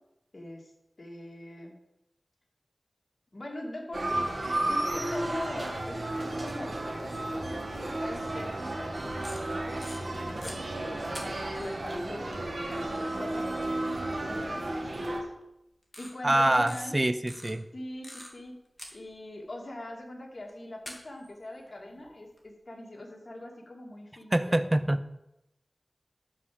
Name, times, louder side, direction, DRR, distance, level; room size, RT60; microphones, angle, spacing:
voice 1, 0.3-0.7 1.0-1.7 3.3-4.3 4.7-11.0 11.5-15.3 16.0-17.0 17.7-18.6 18.9-24.6, left 1 dB, 55° left, 0 dB, 2.6 m, -42 dB
sound 1, 3.9-15.2, right 1 dB, 65° right, 1.9 m, -33 dB
sound 2, 9.2-10.6 11.1-11.7 13.5-13.6 14.7-14.8 15.0-15.1 15.8-16.1 16.6-16.8 17.3-18.5 18.8-19.5 20.5-20.6 20.9-22.5, left 1 dB, 25° left, 2.4 m, -45 dB
voice 2, 16.2-17.6 24.3-25.0, right 1 dB, 25° right, 11 dB, 0.7 m, -25 dB
11.5 x 4.9 x 7.7 m, 0.88 s
wide cardioid pair, 50°, 0 cm